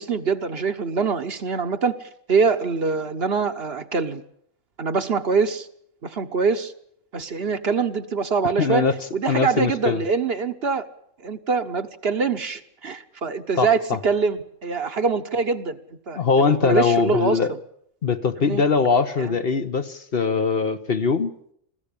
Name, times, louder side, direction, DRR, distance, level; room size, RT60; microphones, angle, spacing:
voice 1, 0.0-4.2 4.8-5.7 6.0-6.7 7.1-8.9 9.1-10.9 11.2-15.8 16.1-17.4 18.4-18.6 19.2-19.4, right 5 dB, 55° right, 8 dB, 1.2 m, -24 dB
voice 2, 8.6-8.9 9.3-10.0 13.6-14.0 16.2-17.5 18.0-21.3, left 5 dB, 50° left, 9 dB, 1.2 m, -21 dB
21.5 x 15.0 x 8.5 m, 0.70 s
omnidirectional pair, 1.3 m